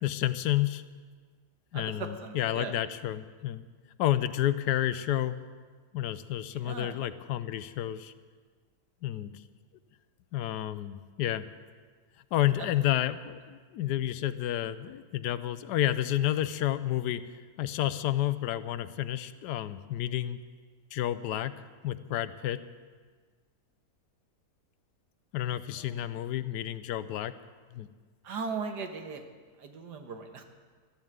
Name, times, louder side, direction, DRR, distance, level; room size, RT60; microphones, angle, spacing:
voice 1, 0.0-0.8 1.7-3.6 4.0-5.4 5.9-8.1 9.0-9.4 10.3-11.5 12.3-17.2 17.6-20.4 20.9-21.5 21.8-22.6 25.3-27.3 27.7-27.9, left 12 dB, 90° left, 14 dB, 1.2 m, -30 dB
voice 2, 1.7-2.7 6.5-7.0 12.6-12.7 25.7-26.1 28.2-29.2 29.6-30.4, right 5 dB, 80° right, 6 dB, 1.8 m, -38 dB
13.0 x 11.0 x 8.0 m, 1.5 s
omnidirectional pair, 1.8 m